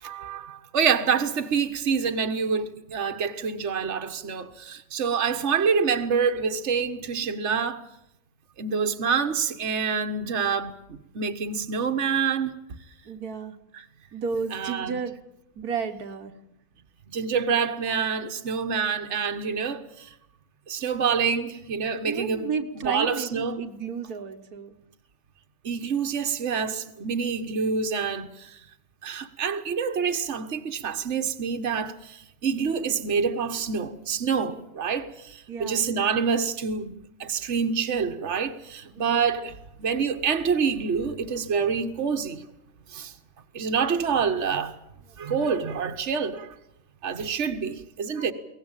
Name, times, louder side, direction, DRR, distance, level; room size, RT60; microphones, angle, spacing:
voice 1, 0.0-7.8 8.6-12.6 14.5-15.0 17.1-20.1 20.7-22.5 22.8-23.6 25.6-28.5 29.0-36.9 37.2-42.4 42.9-43.1 43.5-44.7 45.2-46.5 47.0-48.3, right 6 dB, 50° right, 1.6 m, -27 dB
voice 2, 13.1-13.6 14.1-15.2 15.6-16.4 22.1-24.8 32.6-32.8 35.5-35.9 39.0-39.3, right 6 dB, 80° right, 1.8 m, -33 dB
23.0 x 18.5 x 9.0 m
omnidirectional pair, 1.6 m